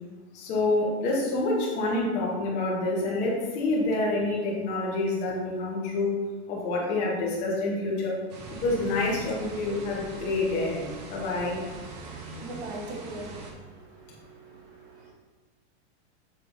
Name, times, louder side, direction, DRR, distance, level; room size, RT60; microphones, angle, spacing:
voice 1, 0.3-6.2 6.5-8.2 8.6-11.6, left 2 dB, 20° left, -3 dB, 0.7 m, -27 dB
sound 1, 8.3-13.5, right 3 dB, 35° right, 0.5 m, -42 dB
voice 2, 11.8-15.1, right 2 dB, 65° right, 0 dB, 1.2 m, -42 dB
6.5 x 3.3 x 2.5 m, 1.3 s
supercardioid pair, 180°, 34 cm